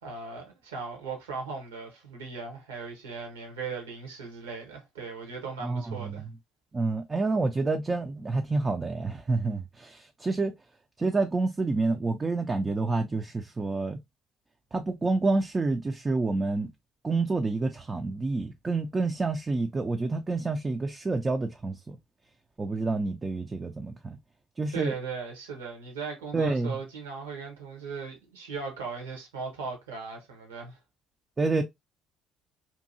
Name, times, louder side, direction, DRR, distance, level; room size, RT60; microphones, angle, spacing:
voice 1, 0.0-6.2 24.7-30.8, right 5 dB, 75° right, 1.0 m, -38 dB
voice 2, 5.6-6.3 6.7-10.5 11.0-14.0 14.7-16.7 17.0-22.0 22.6-24.2 24.6-24.9 26.3-26.8 31.4-31.6, right 3 dB, 25° right, 0.4 m, -28 dB
2.8 x 2.6 x 2.6 m
figure-of-eight pair, 55°, 0 cm